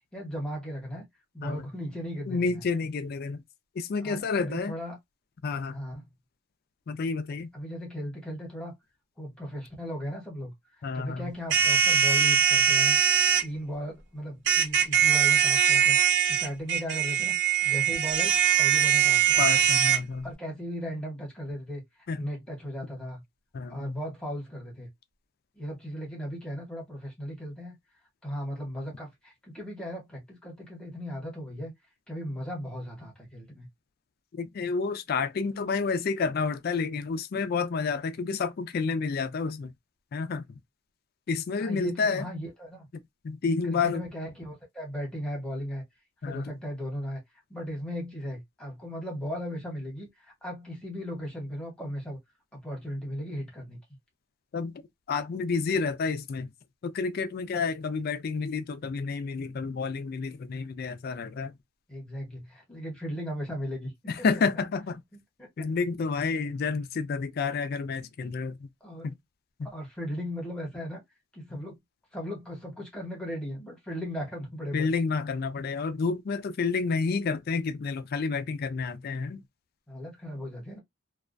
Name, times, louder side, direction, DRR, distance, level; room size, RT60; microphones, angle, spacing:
voice 1, 0.1-1.1 1.3-2.5 4.0-5.0 5.7-6.0 7.5-8.7 9.2-10.5 10.9-13.0 13.4-16.0 16.3-17.4 17.6-19.4 20.2-21.8 22.1-23.2 23.7-24.9 25.5-27.7 28.2-31.7 32.1-33.7 41.6-42.9 43.6-45.8 46.2-47.2 47.5-52.2 52.5-53.8 61.9-63.9 65.4-65.5 68.8-69.1 69.6-71.0 71.3-71.8 72.1-74.9 79.9-80.8, equal, 5° left, 0.9 m, -37 dB
voice 2, 2.3-3.4 3.7-4.7 5.4-5.8 6.9-7.5 10.8-11.3 19.4-20.3 22.1-22.3 23.5-24.0 34.3-39.7 40.1-40.6 41.3-42.3 43.2-44.0 46.2-46.5 54.5-54.8 55.1-56.5 56.8-61.5 64.1-65.0 65.6-68.7 69.0-69.2 69.6-69.7 71.5-71.6 74.7-79.4, left 4 dB, 45° left, 0.3 m, -30 dB
sound 1, 11.5-13.4 14.5-20.0, right 9 dB, 55° right, 0.5 m, -22 dB
2.3 x 2.1 x 2.5 m
head